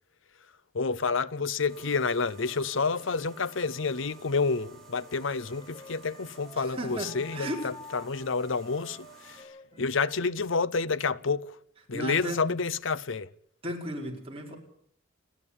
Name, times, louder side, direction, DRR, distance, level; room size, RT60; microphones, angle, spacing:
voice 1, 0.7-11.6 11.9-13.3, left 4 dB, 70° left, 0.8 m, -29 dB
sound 1, 1.7-9.4, right 4 dB, ahead, 6.4 m, -53 dB
Wind instrument woodwind instrument, 5.0-10.3, left 4 dB, 25° left, 1.7 m, -50 dB
voice 2, 6.5-7.6 9.7-9.8 11.9-12.4 13.6-14.6, right 1 dB, 30° right, 4.3 m, -35 dB
29.5 x 10.5 x 8.5 m
head